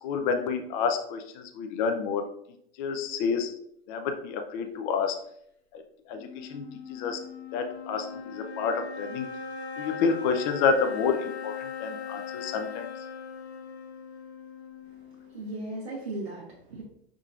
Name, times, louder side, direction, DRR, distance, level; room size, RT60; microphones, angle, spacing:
voice 1, 0.0-2.3 2.8-3.5 3.9-5.2 5.7-5.8 6.1-7.2 7.5-9.3 9.8-12.9, left 5 dB, 45° left, 6 dB, 0.6 m, -29 dB
sound 1, 6.1-15.6, left 6 dB, 85° left, 1.1 m, -40 dB
voice 2, 14.8-16.8, right 2 dB, 80° right, -4 dB, 1.2 m, -38 dB
5.3 x 3.7 x 2.4 m, 0.71 s
figure-of-eight pair, 95°, 32 cm